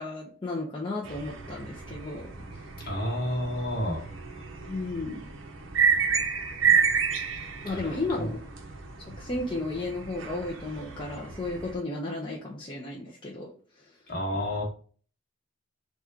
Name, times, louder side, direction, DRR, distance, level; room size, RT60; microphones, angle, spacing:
voice 1, 0.0-2.3 4.7-5.2 7.6-8.5 9.2-13.5, left 2 dB, 25° left, -4 dB, 0.7 m, -33 dB
sound 1, 1.0-11.7, right 6 dB, 85° right, 0.8 m, -30 dB
voice 2, 2.8-4.0 6.6-6.8 7.7-8.3 14.1-14.6, equal, 50° left, -1 dB, 1.4 m, -31 dB
4.1 x 2.4 x 4.6 m, 0.42 s
head